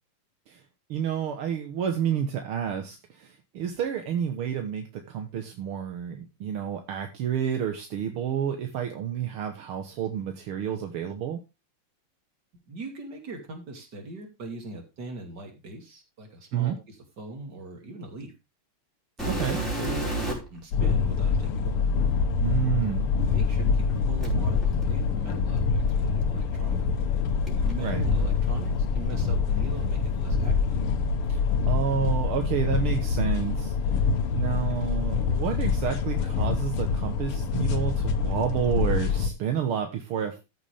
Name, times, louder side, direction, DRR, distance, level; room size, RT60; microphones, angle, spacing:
voice 1, 0.9-11.4 16.5-16.8 19.3-19.6 22.4-23.1 27.8-28.0 31.3-31.4 31.7-34.0 34.4-40.4, right 9 dB, 75° right, 5 dB, 2.1 m, -30 dB
voice 2, 12.7-18.3 19.4-21.9 23.2-26.9 27.6-30.8, right 2 dB, 50° right, 3 dB, 3.2 m, -40 dB
sound 1, 19.2-20.6 21.4-21.5 24.2-26.3 27.4-31.2 31.5-32.5 33.3-33.4 34.0-34.1 34.8-35.9 36.2-36.7 38.0-38.1, right 2 dB, ahead, 5.0 m, -33 dB
sound 2, 20.7-39.3, left 5 dB, 85° left, 2.0 m, -25 dB
14.0 x 7.2 x 3.4 m, 0.26 s
omnidirectional pair, 2.4 m